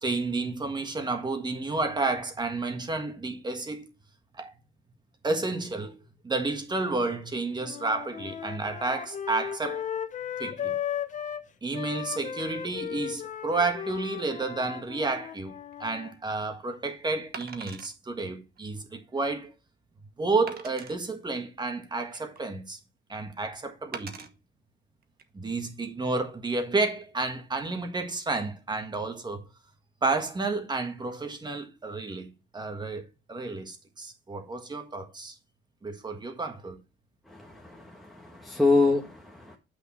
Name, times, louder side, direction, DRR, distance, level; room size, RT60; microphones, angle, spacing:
voice 1, 0.0-3.9 4.3-4.5 5.2-6.0 6.2-9.9 10.4-10.8 11.6-19.5 20.2-22.8 23.1-24.3 25.3-29.5 30.0-35.3 35.8-36.8, right 3 dB, 20° right, 1.5 m, -31 dB
sound 1, 7.6-11.4 11.7-16.1, left 9 dB, 40° left, 0.7 m, -36 dB
Wood, 15.7-15.9 17.3-17.9 18.6-18.7 19.2-19.3 20.5-21.0 21.7-22.5 23.9-24.3 25.0-25.2, right 6 dB, 50° right, 1.2 m, -42 dB
voice 2, 37.3-39.6, left 3 dB, ahead, 1.2 m, -26 dB
8.1 x 6.2 x 4.2 m
cardioid pair, 115°, 20 cm